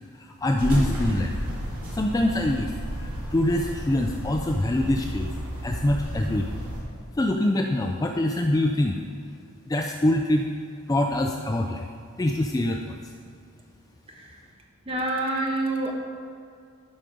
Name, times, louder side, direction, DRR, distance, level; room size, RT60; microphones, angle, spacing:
voice 1, 0.2-1.4 1.9-5.3 5.6-6.6 7.2-9.0 9.7-10.5 10.9-11.9 12.2-13.0, left 1 dB, 15° left, 3 dB, 0.3 m, -24 dB
sound 1, 0.6-6.8, equal, 85° right, 2.5 m, -32 dB
voice 2, 14.9-15.9, right 2 dB, 25° right, 0 dB, 1.2 m, -27 dB
12.0 x 5.1 x 5.2 m, 2.3 s
head